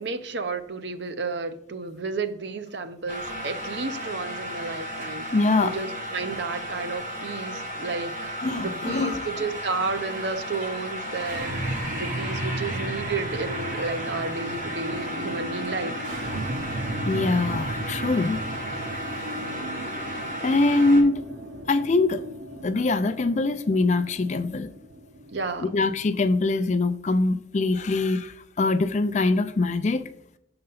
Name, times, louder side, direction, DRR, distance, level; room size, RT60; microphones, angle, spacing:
voice 1, 0.0-5.3 5.6-16.0 19.3-19.9 25.3-25.7, right 3 dB, 65° right, 9 dB, 0.7 m, -32 dB
sound 1, 3.1-21.0, equal, 40° right, 1.7 m, -34 dB
voice 2, 5.3-5.7 8.4-9.3 17.0-18.4 19.2-19.3 20.4-21.2 21.7-22.2 22.6-24.7 25.6-30.1, left 3 dB, 40° left, 11 dB, 0.4 m, -23 dB
sound 2, 11.2-26.4, right 2 dB, 90° right, 1.0 m, -35 dB
6.6 x 3.9 x 5.6 m, 0.74 s
head